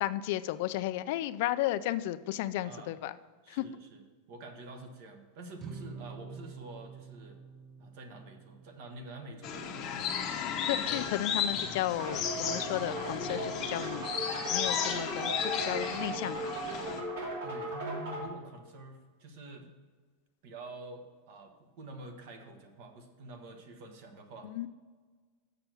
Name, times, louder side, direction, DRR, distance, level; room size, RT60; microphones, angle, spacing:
voice 1, 0.0-3.1 3.5-3.6 10.7-14.1 14.5-16.5 24.4-24.7, left 14 dB, 50° left, 12 dB, 0.4 m, -34 dB
voice 2, 2.6-3.0 3.4-7.4 7.8-10.2 10.7-11.3 17.4-19.7 20.4-24.5, right 2 dB, 45° right, 6 dB, 1.2 m, -47 dB
sound 1, 5.6-12.0, right 6 dB, 20° right, 0.6 m, -50 dB
sound 2, 9.4-17.0, left 7 dB, 25° left, 0.8 m, -34 dB
sound 3, 12.0-18.2, right 2 dB, 70° right, 3.1 m, -37 dB
7.0 x 6.7 x 6.0 m, 1.4 s
supercardioid pair, 175°, 0 cm